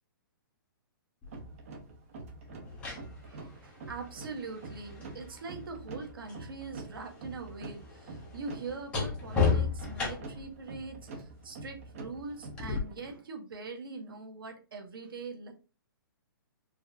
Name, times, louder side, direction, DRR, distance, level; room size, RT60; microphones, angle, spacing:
sound 1, 1.2-1.4 2.5-6.5 6.8-10.5 12.6-12.8, left 5 dB, 10° left, 1.1 m, -34 dB
sound 2, 1.3-13.1, right 3 dB, 40° right, 0.9 m, -46 dB
voice 1, 3.2-15.5, right 4 dB, 75° right, 3 dB, 1.5 m, -43 dB
4.8 x 3.0 x 2.6 m, 0.35 s
hypercardioid pair, 165°, 12 cm